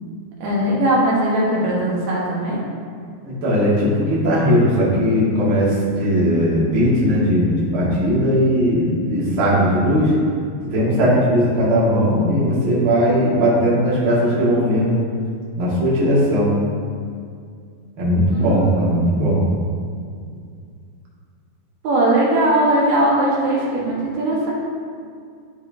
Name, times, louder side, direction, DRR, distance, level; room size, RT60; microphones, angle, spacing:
voice 1, 0.4-2.6 18.3-19.0 21.8-24.5, right 1 dB, 85° right, -5 dB, 3.4 m, -19 dB
voice 2, 3.2-10.1 10.6-14.9 15.6-16.5 18.0-19.4, equal, 45° right, -8 dB, 2.1 m, -18 dB
12.0 x 5.0 x 2.7 m, 2.2 s
omnidirectional pair, 4.4 m